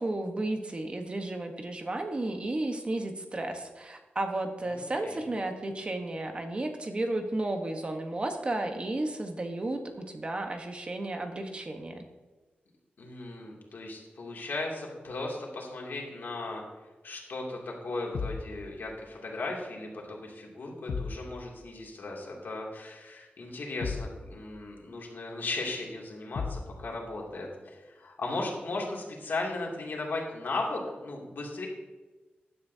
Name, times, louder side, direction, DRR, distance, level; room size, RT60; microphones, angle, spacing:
voice 1, 0.0-12.0, right 2 dB, 30° right, 5 dB, 1.2 m, -33 dB
voice 2, 4.7-5.2 13.0-16.6 17.0-31.7, left 2 dB, 65° left, -2 dB, 2.6 m, -36 dB
sound 1, 18.1-18.5 20.9-21.2 23.8-24.2 26.3-26.7, left 5 dB, 90° left, 1.0 m, -34 dB
15.5 x 10.5 x 2.8 m, 1.2 s
wide cardioid pair, 145°, 4 cm